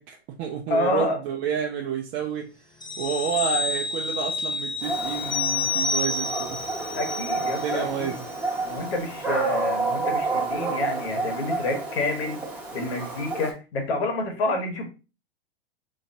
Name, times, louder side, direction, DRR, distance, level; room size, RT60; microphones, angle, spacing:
voice 1, 0.0-2.5 3.0-6.6 7.5-8.2, right 7 dB, 35° right, 0 dB, 0.6 m, -30 dB
voice 2, 0.7-1.2 6.9-8.1 8.6-12.4 12.7-14.8, left 2 dB, 70° left, 3 dB, 1.5 m, -28 dB
sound 1, 2.8-7.9 8.2-8.4, left 3 dB, 15° left, 0.4 m, -29 dB
Dog, 4.8-13.5, right 3 dB, 5° right, 1.1 m, -30 dB
4.0 x 3.0 x 2.6 m, 0.31 s
hypercardioid pair, 115°, 32 cm